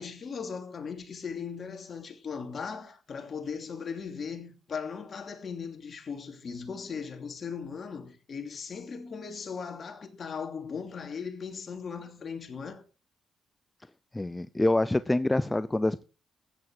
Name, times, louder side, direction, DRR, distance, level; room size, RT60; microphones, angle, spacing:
voice 1, 0.0-12.8, left 6 dB, 45° left, 2.7 m, -38 dB
voice 2, 14.1-16.0, left 2 dB, 15° left, 0.5 m, -26 dB
14.0 x 9.6 x 4.8 m
cardioid pair, 90°, 0 cm